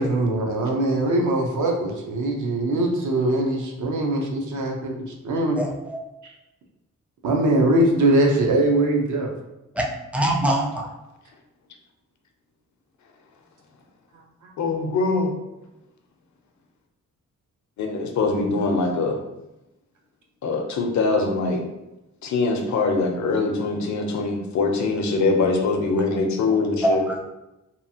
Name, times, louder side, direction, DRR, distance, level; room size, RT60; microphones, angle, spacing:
voice 1, 0.0-4.9 5.2-5.6 7.2-9.3, right 1 dB, 80° right, 0 dB, 0.6 m, -21 dB
voice 2, 5.6-6.0 9.7-9.9 10.1-10.9 26.8-27.2, right 1 dB, 5° right, 0 dB, 0.4 m, -23 dB
voice 3, 14.6-15.3 17.8-19.2 20.4-21.6 22.2-27.0, left 3 dB, 70° left, 3 dB, 0.5 m, -23 dB
2.8 x 2.3 x 2.7 m, 0.94 s
wide cardioid pair, 130°, 30 cm